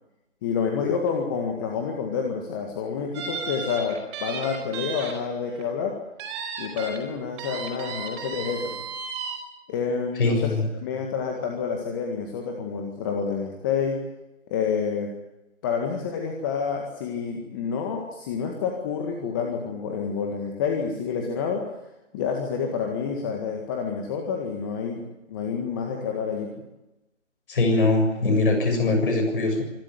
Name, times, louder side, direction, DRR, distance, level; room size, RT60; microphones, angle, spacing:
voice 1, 0.4-6.0 6.6-8.7 9.7-10.5 10.8-14.0 14.5-15.1 15.6-21.6 22.1-26.5, left 6 dB, 15° left, 2 dB, 1.9 m, -28 dB
sound 1, 3.1-5.1 5.5-5.6 6.2-7.0 7.4-9.4, right 5 dB, 20° right, 4.7 m, -34 dB
voice 2, 10.2-10.7 27.5-29.6, left 2 dB, 45° left, 4 dB, 7.2 m, -22 dB
25.5 x 13.0 x 9.8 m, 0.96 s
figure-of-eight pair, 155°, 38 cm